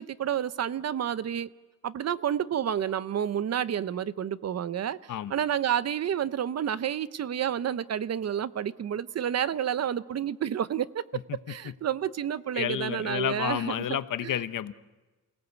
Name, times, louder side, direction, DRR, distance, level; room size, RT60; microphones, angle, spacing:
voice 1, 0.0-1.5 1.8-5.0 5.3-11.0 11.5-13.8 14.2-14.3, right 9 dB, 55° right, 16 dB, 0.7 m, -30 dB
voice 2, 12.5-14.7, left 10 dB, 75° left, 13 dB, 1.0 m, -30 dB
28.0 x 17.5 x 8.2 m, 1.2 s
wide cardioid pair, 155°, 32 cm